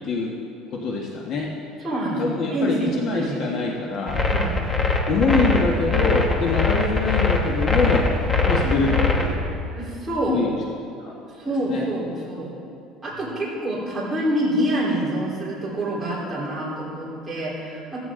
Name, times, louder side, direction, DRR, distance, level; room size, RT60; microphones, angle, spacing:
voice 1, 0.7-1.5 2.2-4.2 5.1-8.1 8.4-9.6 10.3-10.5 11.0-11.1 11.6-11.8, left 3 dB, 40° left, -1 dB, 1.4 m, -24 dB
voice 2, 1.8-3.4 4.3-4.5 9.7-10.4 11.3-12.5 13.0-18.0, right 1 dB, 10° right, -8 dB, 3.9 m, -26 dB
sound 1, 4.1-9.3, left 3 dB, 15° left, 1.0 m, -21 dB
15.5 x 14.5 x 3.8 m, 2.6 s
cardioid pair, 170°, 0 cm